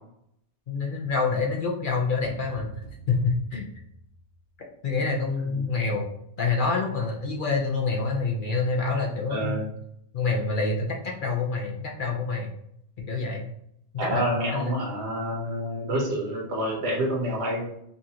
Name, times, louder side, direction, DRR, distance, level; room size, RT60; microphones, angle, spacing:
voice 1, 0.7-2.7 3.1-3.7 4.8-6.0 6.4-9.6 10.1-12.5 13.0-13.5 13.9-14.2 14.5-14.7, left 4 dB, 55° left, -1 dB, 0.8 m, -27 dB
sound 1, 2.2-4.7, right 2 dB, 80° left, 1.9 m, -46 dB
voice 2, 9.3-9.6 14.0-17.6, right 1 dB, 70° right, -1 dB, 1.3 m, -28 dB
5.4 x 2.5 x 2.9 m, 0.75 s
omnidirectional pair, 1.2 m